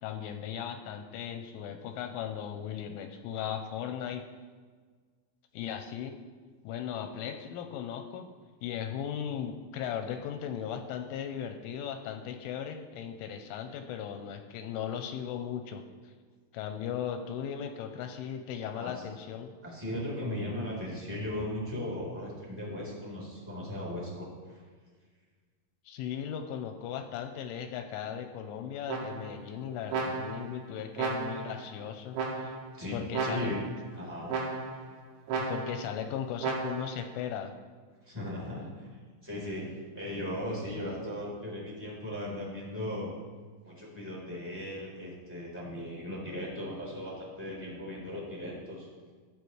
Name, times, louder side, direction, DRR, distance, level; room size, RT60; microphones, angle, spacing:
voice 1, 0.0-4.2 5.5-6.2 6.6-8.3 8.6-16.1 16.5-19.5 25.9-32.6 32.9-33.5 35.4-37.5, left 8 dB, 85° left, 6 dB, 3.0 m, -37 dB
voice 2, 19.6-24.6 32.8-33.6 33.9-34.3 38.0-38.9 39.2-43.1 43.6-48.9, left 1 dB, 5° right, -5 dB, 2.7 m, -37 dB
sound 1, 28.9-29.4 29.9-30.5 31.0-31.6 32.1-32.7 33.1-33.8 34.3-34.9 35.3-35.9 36.4-37.0, right 4 dB, 85° right, 4.7 m, -34 dB
15.5 x 9.8 x 3.2 m, 1.5 s
omnidirectional pair, 5.9 m